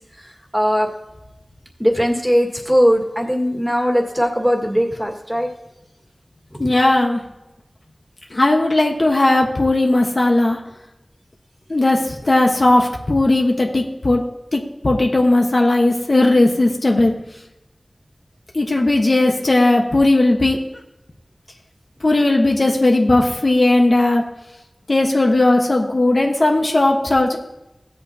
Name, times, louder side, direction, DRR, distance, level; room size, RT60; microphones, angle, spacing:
voice 1, 0.5-0.9 1.8-5.5 6.5-6.6, equal, 5° right, 1 dB, 2.0 m, -19 dB
voice 2, 6.6-7.2 8.3-10.6 11.7-14.2 14.5-17.1 18.5-20.6 22.0-24.2 24.9-27.4, left 2 dB, 55° left, 1 dB, 1.3 m, -16 dB
16.0 x 8.2 x 2.9 m, 0.94 s
wide cardioid pair, 55°, 0 cm